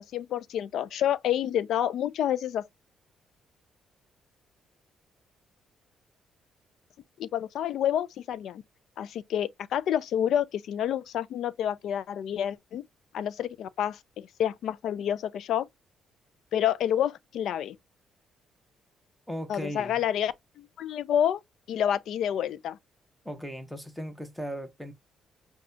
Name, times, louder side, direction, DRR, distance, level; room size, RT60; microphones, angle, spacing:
voice 1, 0.0-2.7 7.2-8.6 9.0-12.8 13.1-15.7 16.5-17.8 19.5-21.4 21.7-22.8, left 10 dB, 75° left, 0.4 m, -28 dB
voice 2, 19.3-20.1 23.2-24.9, equal, ahead, 1.0 m, -37 dB
6.0 x 2.3 x 2.6 m
cardioid pair, 90°, 0 cm